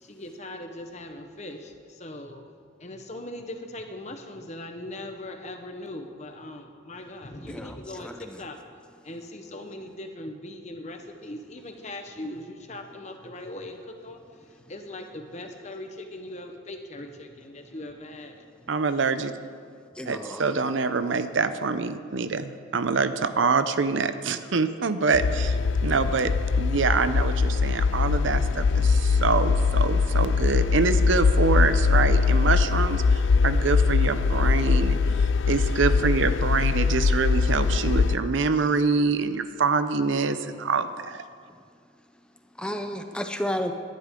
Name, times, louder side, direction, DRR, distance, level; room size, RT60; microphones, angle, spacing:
voice 1, 0.0-2.4 2.8-8.6 9.0-18.4, left 1 dB, 35° left, 5 dB, 1.0 m, -40 dB
voice 2, 7.5-8.4 19.9-20.5 42.6-43.7, equal, 5° left, 6 dB, 0.6 m, -32 dB
voice 3, 18.7-19.3 20.1-25.6 25.8-26.3 26.6-35.0 35.5-41.2, right 4 dB, 70° right, 11 dB, 0.6 m, -25 dB
sound 1, 25.1-38.2, left 5 dB, 65° left, 0.4 m, -22 dB
18.5 x 11.0 x 3.8 m, 2.1 s
head